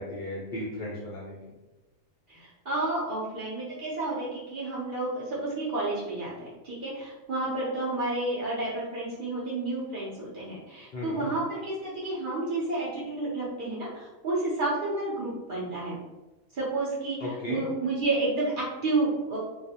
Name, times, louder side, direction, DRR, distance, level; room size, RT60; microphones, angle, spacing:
voice 1, 0.0-1.4 10.9-11.3 17.2-17.6, left 1 dB, 80° left, -5 dB, 0.4 m, -35 dB
voice 2, 2.3-16.0 16.5-19.4, right 2 dB, 55° right, -7 dB, 0.6 m, -30 dB
2.3 x 2.0 x 2.7 m, 1.1 s
omnidirectional pair, 1.4 m